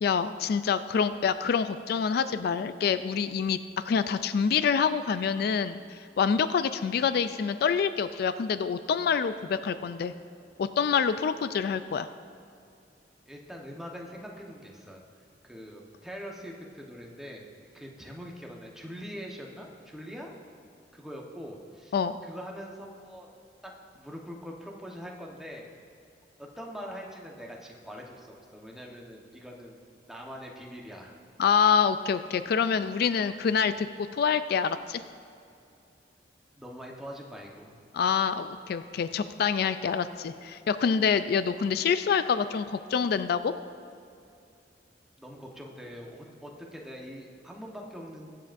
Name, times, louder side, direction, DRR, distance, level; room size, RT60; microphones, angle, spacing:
voice 1, 0.0-3.6 3.8-10.1 10.6-12.1 21.9-22.1 31.4-33.9 34.1-35.0 37.9-43.5, left 6 dB, 60° left, 12 dB, 0.3 m, -26 dB
voice 2, 13.3-15.0 15.4-17.5 17.7-20.3 20.9-22.0 22.2-23.3 23.6-25.6 26.4-29.8 30.1-31.1 36.6-37.8 45.2-48.4, equal, ahead, -1 dB, 1.1 m, -43 dB
22.0 x 7.6 x 2.6 m, 2.6 s
head